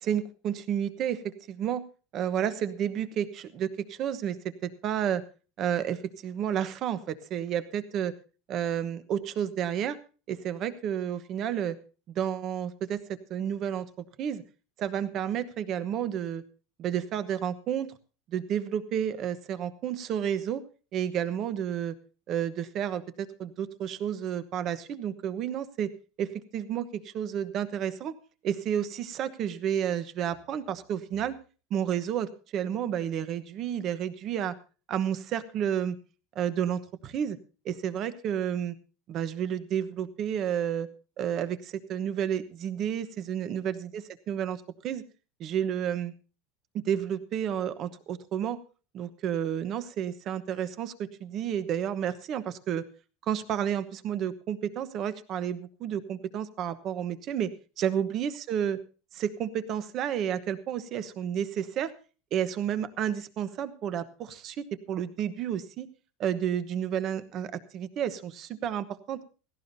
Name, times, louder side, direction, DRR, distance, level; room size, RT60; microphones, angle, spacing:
voice 1, 0.0-1.8 2.1-5.2 5.6-8.1 8.5-10.0 10.3-11.8 12.1-13.0 13.3-13.9 14.2-14.4 14.8-16.4 16.8-17.9 18.3-20.6 20.9-21.9 22.3-25.9 26.2-28.1 28.4-31.4 31.7-34.5 34.9-36.0 36.3-37.4 37.6-38.7 39.1-40.9 41.2-45.0 45.4-46.1 46.7-48.6 48.9-52.8 53.2-58.8 59.1-61.9 62.3-65.9 66.2-69.2, right 9 dB, 30° right, 14 dB, 1.1 m, -31 dB
17.0 x 16.5 x 2.7 m, 0.35 s
supercardioid pair, 175°, 0 cm